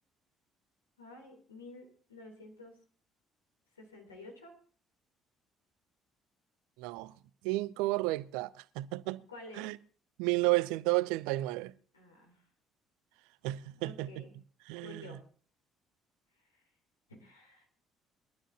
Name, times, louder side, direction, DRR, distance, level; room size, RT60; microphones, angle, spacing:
voice 1, 1.0-2.8 3.8-4.5 9.3-9.7 11.9-12.4 13.7-14.3 14.8-15.2 16.5-16.6 17.1-17.7, left 2 dB, 85° left, 3.6 m, -51 dB
voice 2, 6.8-7.1 7.4-9.2 9.6-9.8 10.2-11.7 13.4-14.2 14.7-15.2, right 20 dB, 70° right, 0.5 m, -32 dB
22.5 x 12.5 x 3.0 m
figure-of-eight pair, 50°, 0 cm